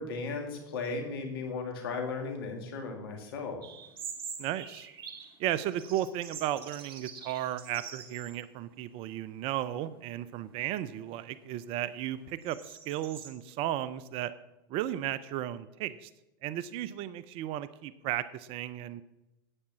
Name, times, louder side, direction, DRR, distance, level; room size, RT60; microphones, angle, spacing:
voice 1, 0.0-3.6, left 4 dB, 70° left, 4 dB, 2.2 m, -36 dB
sound 1, 3.6-5.4 5.7-8.4 8.8-8.9 9.6-10.0 10.5-13.3, right 6 dB, 75° right, 1.9 m, -45 dB
voice 2, 4.4-4.9 5.4-14.3 14.7-16.1 16.4-19.0, right 12 dB, 50° right, 16 dB, 0.6 m, -34 dB
9.8 x 8.7 x 6.1 m, 0.93 s
hypercardioid pair, 90°, 13 cm